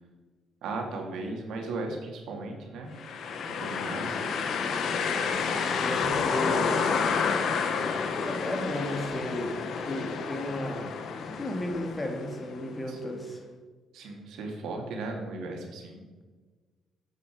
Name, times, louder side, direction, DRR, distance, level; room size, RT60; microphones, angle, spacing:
voice 1, 0.6-2.9 3.6-4.2 12.9-13.2 13.9-16.0, right 3 dB, 80° right, 2 dB, 2.2 m, -36 dB
Wind instrument woodwind instrument, 2.3-10.3, equal, ahead, 3.5 m, -50 dB
sound 1, 3.0-12.8, left 5 dB, 65° left, 1.1 m, -30 dB
voice 2, 5.8-6.9 7.8-7.9 8.2-9.5 9.8-11.0 11.2-13.4, left 1 dB, 20° left, 4 dB, 2.1 m, -34 dB
11.0 x 8.2 x 4.7 m, 1.4 s
cardioid pair, 90°, 0 cm